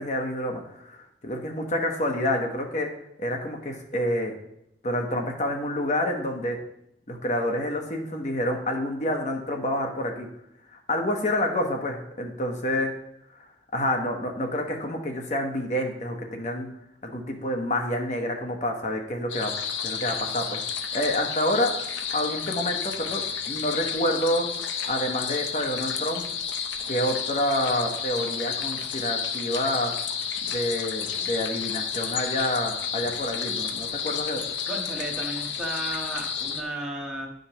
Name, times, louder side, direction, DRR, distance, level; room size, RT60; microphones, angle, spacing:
voice 1, 0.0-2.9 3.2-4.3 4.8-6.6 7.1-10.3 10.9-12.9 13.3-13.4 13.7-16.7 17.0-19.5 19.8-20.6 20.9-21.7 22.1-24.5 24.9-26.2 26.9-29.9 30.4-34.4, left 1 dB, 40° left, 3 dB, 1.1 m, -28 dB
sound 1, 19.3-36.6, left 7 dB, 80° left, 0.7 m, -31 dB
voice 2, 34.7-37.3, right 1 dB, 5° right, -4 dB, 1.0 m, -34 dB
11.0 x 5.2 x 3.0 m, 0.78 s
head